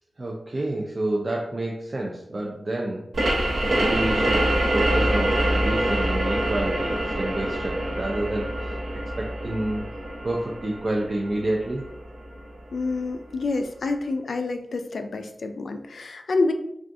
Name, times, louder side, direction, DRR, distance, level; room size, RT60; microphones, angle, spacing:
voice 1, 0.2-3.1 3.4-8.8 9.2-9.9 10.2-11.8, right 1 dB, 35° right, -1 dB, 0.4 m, -29 dB
sound 1, 3.1-12.5, right 1 dB, 70° right, 0.8 m, -25 dB
voice 2, 12.7-16.5, left 3 dB, 70° left, 7 dB, 0.3 m, -27 dB
3.5 x 2.4 x 2.6 m, 0.76 s
wide cardioid pair, 120°, 0 cm